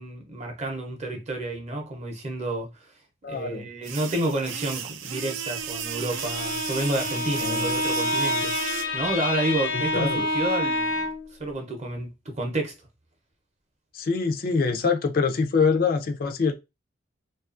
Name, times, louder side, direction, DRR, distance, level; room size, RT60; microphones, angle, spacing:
voice 1, 0.0-2.9 3.3-8.5 8.9-11.1 11.4-12.7, right 1 dB, 35° right, 0.6 m, -30 dB
voice 2, 3.2-3.7 7.4-7.7 9.7-10.2 13.9-16.5, left 5 dB, 45° left, 0.4 m, -25 dB
sound 1, 3.8-8.8, right 8 dB, 75° right, 0.4 m, -34 dB
Bowed string instrument, 6.0-11.3, left 1 dB, 85° left, 0.6 m, -28 dB
2.6 x 2.3 x 2.4 m
head